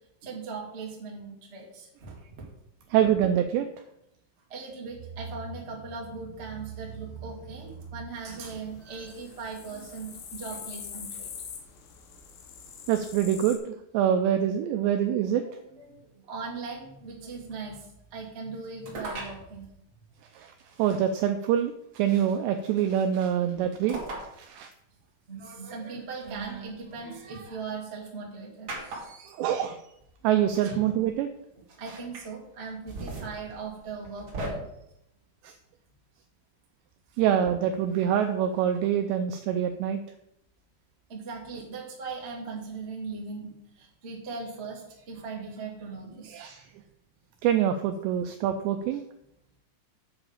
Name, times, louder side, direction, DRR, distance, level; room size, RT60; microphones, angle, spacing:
voice 1, 0.2-2.2 4.5-11.3 15.4-19.7 23.6-23.7 25.3-29.6 30.6-30.9 31.8-34.7 37.1-37.2 41.1-46.4, right 4 dB, 70° right, -2 dB, 0.6 m, -39 dB
voice 2, 2.9-3.7 12.9-15.4 20.3-24.0 24.4-24.7 29.3-29.8 30.2-31.3 35.4-35.5 37.2-40.0 46.3-46.7 47.4-49.0, right 9 dB, 85° right, 7 dB, 2.4 m, -25 dB
sound 1, 8.2-13.6, left 7 dB, 70° left, 2.3 m, -44 dB
sound 2, 18.8-19.4 20.7-20.8 22.3-22.7 23.9-24.3 24.7-24.8 26.2-27.4 28.7-29.3 30.2-30.3 30.5-30.7 31.7-32.2 32.7-34.5, right 2 dB, 50° right, 1.6 m, -38 dB
8.4 x 5.0 x 7.2 m, 0.81 s
omnidirectional pair, 5.6 m